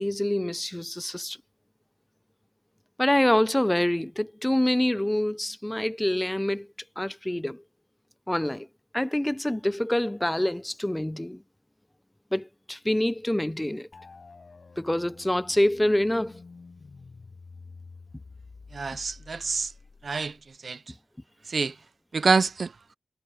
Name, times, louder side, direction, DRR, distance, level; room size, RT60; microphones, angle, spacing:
voice 1, 0.0-1.4 3.0-6.7 7.0-7.6 8.3-8.7 8.9-11.4 12.3-13.9 14.8-16.4, left 1 dB, 10° left, 0.6 m, -26 dB
sound 1, 13.9-20.6, left 4 dB, 45° left, 5.1 m, -49 dB
voice 2, 18.7-19.7 20.0-20.4 20.6-20.8 21.5-21.7 22.1-22.7, right 4 dB, 50° right, 0.6 m, -26 dB
cardioid pair, 80°, 0 cm